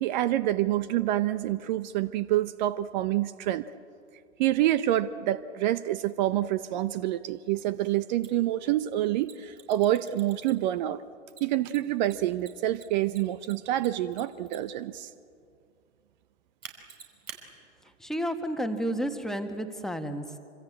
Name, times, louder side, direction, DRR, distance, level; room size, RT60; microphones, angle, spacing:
voice 1, 0.0-3.6 4.4-11.0 11.4-15.1, right 13 dB, 35° right, 15 dB, 0.8 m, -27 dB
Mechanisms, 8.2-8.3 9.2-10.8 11.3-14.8 16.6-17.4, right 7 dB, 75° right, 5.2 m, -47 dB
voice 2, 18.0-20.4, equal, ahead, 6 dB, 1.6 m, -31 dB
26.5 x 25.5 x 8.7 m, 2.4 s
hypercardioid pair, 120°, 40 cm